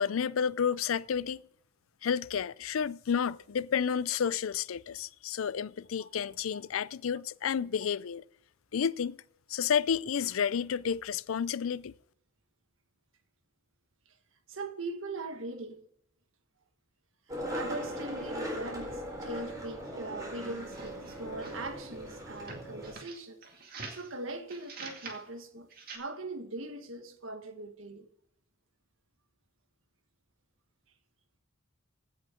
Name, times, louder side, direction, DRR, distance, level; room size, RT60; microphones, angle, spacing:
voice 1, 0.0-1.4 2.0-8.2 8.7-9.2 9.5-11.9, left 7 dB, 85° left, 0.4 m, -31 dB
voice 2, 14.5-15.8 17.3-23.4 23.9-28.0, right 2 dB, 75° right, 1.6 m, -41 dB
Skateboard, 17.3-22.9, equal, 15° right, 4.1 m, -39 dB
sound 1, 20.6-21.7 22.4-24.1 24.5-25.2 25.7-26.0, right 4 dB, 45° right, 2.2 m, -45 dB
16.0 x 6.5 x 5.0 m
head